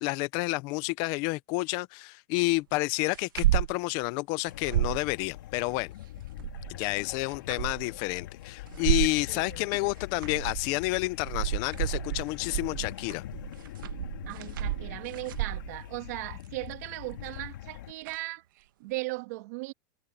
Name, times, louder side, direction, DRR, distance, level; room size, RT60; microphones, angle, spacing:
voice 1, 0.0-5.9 6.7-13.2, left 22 dB, 35° left, 0.7 m, -30 dB
sound 1, 3.1-3.7 4.1-4.2 4.5-5.0 6.2-6.8 7.3-8.0 8.7-9.2 10.0-10.7 11.0-15.8 17.1-17.4 18.1-18.2, right 14 dB, 85° right, 1.4 m, -30 dB
sound 2, 4.5-17.9, left 14 dB, 70° left, 3.3 m, -43 dB
voice 2, 9.3-9.7 14.3-19.7, right 22 dB, 50° right, 1.7 m, -38 dB
supercardioid pair, 170°, 11 cm